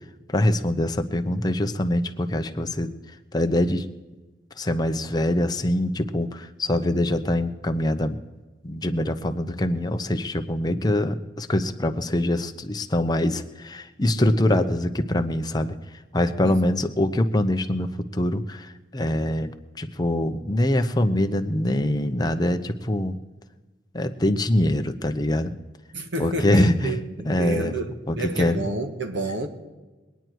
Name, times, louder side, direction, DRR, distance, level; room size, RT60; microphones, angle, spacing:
voice 1, 0.3-2.9 3.3-3.8 4.6-8.2 8.6-19.5 19.8-23.2 23.9-25.5 26.2-27.0 27.2-27.8 28.1-28.7, left 1 dB, 20° left, 7 dB, 0.7 m, -24 dB
voice 2, 16.4-16.9 25.9-29.5, right 2 dB, 85° right, 6 dB, 1.6 m, -30 dB
22.0 x 9.2 x 4.6 m, 1.2 s
head